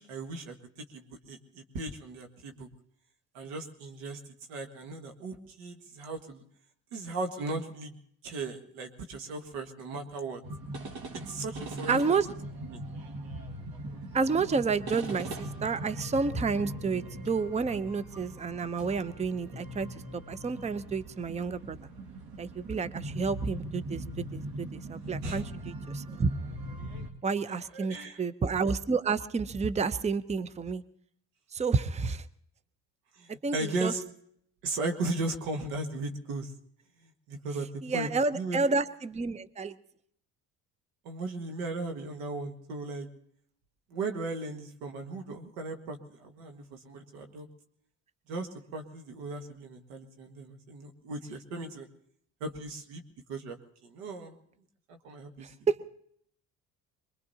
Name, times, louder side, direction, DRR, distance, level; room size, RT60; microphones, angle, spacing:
voice 1, 0.0-2.7 3.3-4.2 4.5-6.4 6.9-8.0 8.2-10.4 11.1-12.2 12.6-12.8 25.2-25.4 27.7-28.2 33.1-34.0 34.6-36.5 37.0-38.7 41.1-43.1 43.9-47.5 48.3-51.9 52.4-53.0 53.3-53.6 53.8-54.3 54.9-55.5, right 2 dB, 90° right, 5 dB, 1.8 m, -37 dB
sound 1, 10.4-27.1, right 1 dB, 70° right, 2.0 m, -40 dB
voice 2, 11.9-12.3 14.1-19.9 20.1-21.8 22.4-26.3 27.2-30.8 31.5-32.3 33.4-33.9 37.8-39.7 55.4-55.8, right 4 dB, 15° right, 14 dB, 0.7 m, -30 dB
24.0 x 22.0 x 2.8 m, 0.67 s
supercardioid pair, 70°, 39 cm